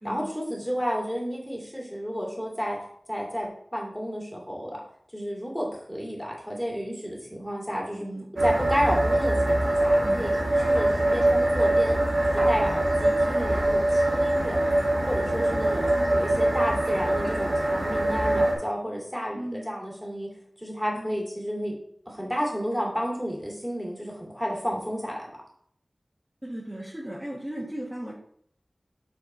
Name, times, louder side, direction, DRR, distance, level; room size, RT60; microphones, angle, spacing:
voice 1, 0.0-2.8 3.1-4.8 5.1-8.1 8.4-10.3 10.6-12.0 12.3-14.6 15.1-20.3 20.6-21.7 22.1-25.2, equal, ahead, -2 dB, 2.3 m, -31 dB
sound 1, 8.4-18.5, right 1 dB, 85° right, 1.9 m, -23 dB
voice 2, 15.9-16.2 19.3-19.8 20.9-21.2 26.4-28.1, right 1 dB, 20° right, -5 dB, 1.5 m, -37 dB
6.6 x 4.4 x 4.3 m, 0.63 s
wide cardioid pair, 65°, 0 cm